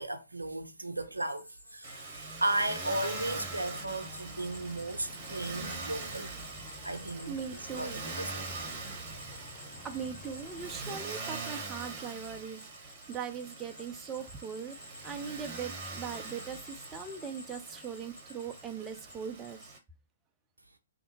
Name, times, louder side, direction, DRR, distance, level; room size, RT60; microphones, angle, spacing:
voice 1, 0.0-6.3 6.8-7.4 7.7-8.5, right 2 dB, 85° right, 0.6 m, -35 dB
sound 1, 1.1-19.8, left 1 dB, 65° left, 1.3 m, -53 dB
Motor vehicle (road), 1.8-19.8, right 3 dB, 30° right, 1.0 m, -43 dB
sound 2, 3.1-11.0, left 3 dB, 15° left, 0.9 m, -52 dB
voice 2, 7.3-8.0 9.8-14.8 15.0-19.7, right 7 dB, 15° right, 0.5 m, -40 dB
3.4 x 2.6 x 2.8 m
figure-of-eight pair, 120°, 0 cm